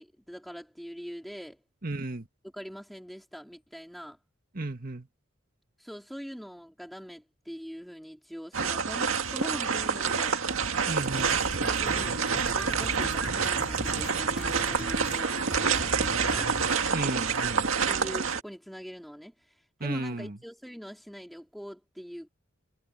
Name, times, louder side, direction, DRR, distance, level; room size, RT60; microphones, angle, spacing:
voice 1, 0.0-1.6 2.5-4.2 5.8-10.4 11.6-16.5 17.9-22.3, equal, ahead, 3.8 m, -43 dB
voice 2, 1.8-2.3 4.5-5.1 10.9-11.4 16.9-17.7 19.8-20.4, right 2 dB, 45° right, 1.9 m, -33 dB
sound 1, 8.5-18.4, right 5 dB, 80° right, 1.9 m, -28 dB
sound 2, 11.0-15.2 15.5-16.8, left 1 dB, 45° left, 5.4 m, -40 dB
head